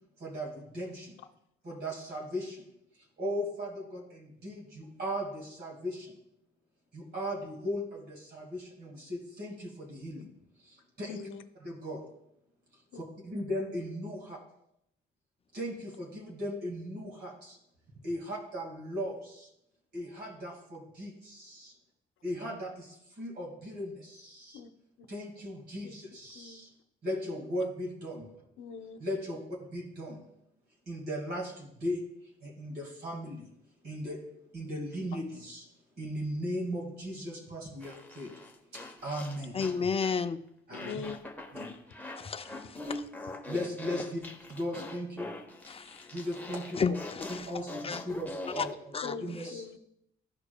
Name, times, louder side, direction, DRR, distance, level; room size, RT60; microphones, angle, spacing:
voice 1, 0.2-1.2 1.6-2.7 3.2-6.2 6.9-10.3 10.6-11.2 11.6-12.0 12.9-14.4 15.5-17.6 18.0-19.5 19.9-21.7 22.2-24.6 25.1-26.7 27.0-28.3 29.0-30.2 30.9-32.0 32.4-33.5 33.8-34.2 34.5-35.7 36.0-38.3 38.7-39.6 40.7-41.0 41.5-41.7 43.4-45.3 46.1-46.9 47.3-48.7 49.0-49.6, equal, 55° right, -1 dB, 2.0 m, -37 dB
voice 2, 11.1-11.4 12.9-13.0 24.5-24.7 25.0-25.1 25.8-25.9 26.3-26.7 28.6-29.0 40.7-41.2 49.0-49.8, left 6 dB, 80° left, 8 dB, 0.7 m, -42 dB
sound 1, 37.8-40.3 40.7-48.7, left 2 dB, 10° left, 0.9 m, -43 dB
voice 3, 39.5-40.4 42.2-43.1 45.7-46.1 46.8-48.0 48.6-48.7 48.9-49.4, left 5 dB, 30° left, 10 dB, 0.4 m, -33 dB
14.0 x 4.9 x 2.3 m, 0.78 s
cardioid pair, 90°, 20 cm